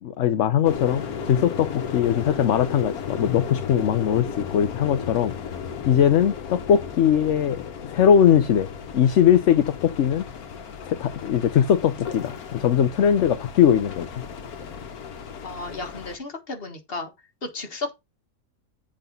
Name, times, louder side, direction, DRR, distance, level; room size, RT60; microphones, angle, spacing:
voice 1, 0.0-5.3 5.9-8.7 8.9-10.2 10.8-14.2, left 9 dB, 60° left, 1.0 m, -20 dB
sound 1, 0.6-16.2, left 7 dB, 90° left, 1.6 m, -35 dB
voice 2, 15.4-17.1 17.4-17.9, left 3 dB, 40° left, 1.8 m, -33 dB
8.0 x 5.1 x 5.3 m
omnidirectional pair, 1.5 m